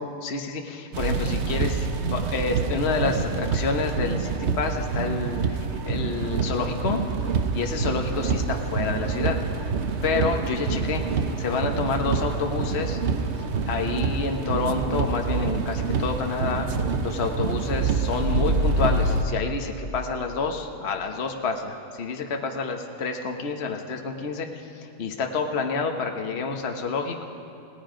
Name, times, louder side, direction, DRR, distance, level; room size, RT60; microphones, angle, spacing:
voice 1, 0.0-7.0 7.5-9.4 10.0-11.0 11.4-13.0 13.7-16.7 17.0-24.5 24.8-27.3, left 4 dB, 45° left, 3 dB, 1.4 m, -28 dB
sound 1, 0.9-19.2, right 4 dB, 50° right, 1.1 m, -26 dB
30.0 x 17.5 x 5.1 m, 2.7 s
omnidirectional pair, 1.7 m